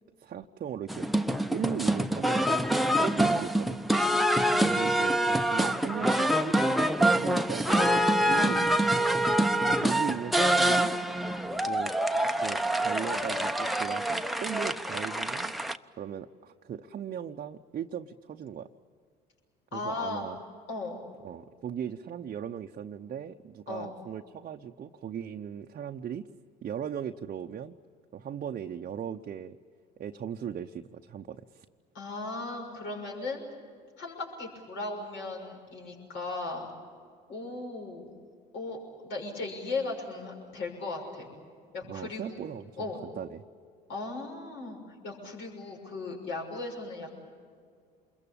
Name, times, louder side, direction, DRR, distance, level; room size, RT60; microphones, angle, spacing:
voice 1, 0.2-1.1 1.5-3.8 4.6-9.1 9.7-10.9 11.7-11.9 12.4-15.5 16.0-18.7 19.7-20.4 21.2-26.3 26.6-27.7 28.1-29.6 30.0-31.6 41.8-43.4, right 8 dB, 40° right, 3 dB, 0.8 m, -38 dB
sound 1, 0.9-15.8, right 1 dB, ahead, 0.9 m, -26 dB
voice 2, 4.3-4.6 8.4-8.8 9.6-9.9 19.7-20.3 20.7-21.0 23.7-23.9 31.9-33.4 34.0-36.7 37.3-38.1 38.5-38.8 39.0-41.3 41.7-42.4 42.8-43.0 43.9-44.8 45.0-47.1, left 3 dB, 65° left, 0 dB, 6.4 m, -37 dB
27.5 x 22.0 x 8.6 m, 2.1 s
hypercardioid pair, 65°, 21 cm